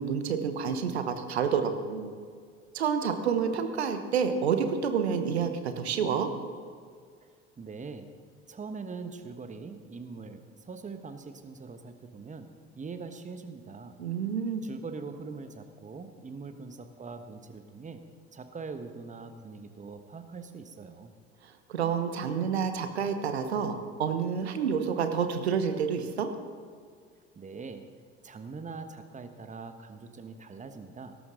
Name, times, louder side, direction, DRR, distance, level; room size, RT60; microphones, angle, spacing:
voice 1, 0.0-2.1 2.7-6.3 14.0-14.6 21.4-26.3, right 6 dB, 75° right, 8 dB, 1.1 m, -29 dB
voice 2, 7.6-8.1 8.5-14.0 14.6-18.0 18.3-21.1 27.3-27.8 28.2-31.2, right 4 dB, 25° right, 8 dB, 1.3 m, -42 dB
17.5 x 13.5 x 3.8 m, 2.1 s
figure-of-eight pair, 60°, 32 cm